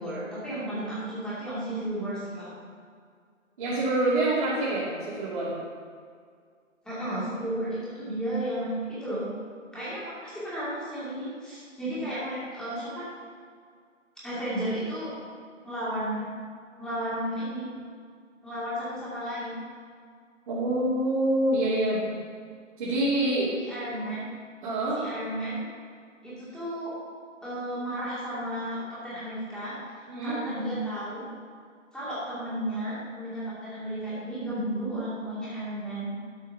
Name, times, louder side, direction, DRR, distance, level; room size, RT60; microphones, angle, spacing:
voice 1, 0.0-2.5 6.8-9.2 9.7-13.1 14.2-15.1 15.6-16.3 16.8-17.7 18.4-19.6 23.5-24.2 24.9-25.6 26.2-26.9 27.4-29.7 30.2-31.2 31.9-36.1, right 1 dB, ahead, -10 dB, 2.4 m, -33 dB
voice 2, 3.6-5.5 20.5-22.1 22.8-23.5 24.6-25.0 30.1-30.4, right 1 dB, 40° right, -9 dB, 2.8 m, -26 dB
12.0 x 5.4 x 5.7 m, 2.1 s
figure-of-eight pair, 145°, 39 cm